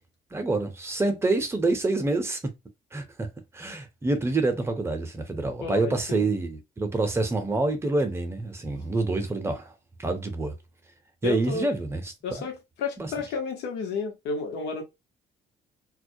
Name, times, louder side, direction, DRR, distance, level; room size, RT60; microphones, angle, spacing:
voice 1, 0.3-2.5 2.9-3.3 3.5-9.7 10.0-10.5 11.2-12.5 13.0-13.1, right 2 dB, 15° right, 0.6 m, -27 dB
voice 2, 5.6-6.3 11.2-11.7 12.2-14.8, left 4 dB, 85° left, 0.9 m, -31 dB
2.2 x 2.1 x 2.6 m
cardioid pair, 110°, 17 cm